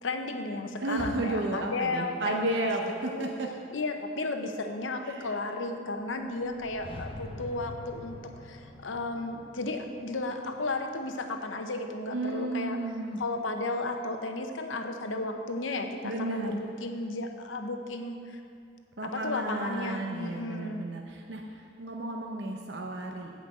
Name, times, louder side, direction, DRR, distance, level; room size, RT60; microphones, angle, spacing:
voice 1, 0.0-2.7 3.1-3.3 3.7-12.8 13.2-18.4 19.0-20.9, left 2 dB, 80° left, 5 dB, 0.8 m, -34 dB
voice 2, 0.8-3.5 5.0-5.3 12.1-13.2 16.0-16.6 19.0-23.3, right 2 dB, 60° right, 1 dB, 0.7 m, -33 dB
sound 1, 6.1-11.2, left 2 dB, 25° left, 0.4 m, -46 dB
8.6 x 5.1 x 7.5 m, 2.5 s
head